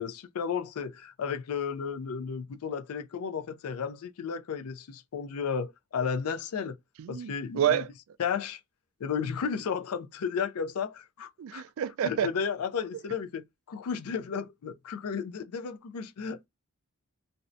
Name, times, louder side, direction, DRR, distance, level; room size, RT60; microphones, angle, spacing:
voice 1, 0.0-6.8 7.1-7.9 8.2-8.6 9.0-11.6 12.0-16.5, left 6 dB, 80° left, 0.4 m, -33 dB
voice 2, 7.0-7.9 11.4-12.3, right 9 dB, 70° right, 0.3 m, -28 dB
2.5 x 2.1 x 2.4 m
head